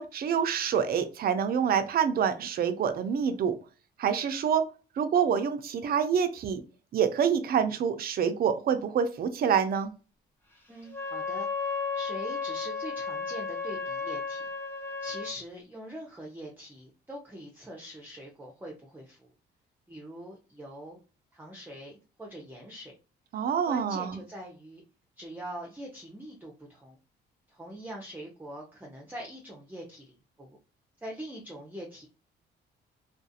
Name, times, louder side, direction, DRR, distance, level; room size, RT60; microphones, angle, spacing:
voice 1, 0.0-3.5 4.0-4.6 5.0-6.6 6.9-9.9 23.3-24.2, right 7 dB, 50° right, 9 dB, 0.5 m, -26 dB
voice 2, 10.7-14.5 15.0-19.3 19.9-21.0 21.3-21.9 22.2-22.9 23.7-24.8 25.2-27.0 27.5-30.6 31.0-32.1, right 1 dB, 10° right, -1 dB, 0.6 m, -43 dB
Wind instrument woodwind instrument, 10.9-15.3, left 5 dB, 10° left, 0.9 m, -34 dB
2.4 x 2.4 x 2.7 m, 0.34 s
cardioid pair, 90°, 20 cm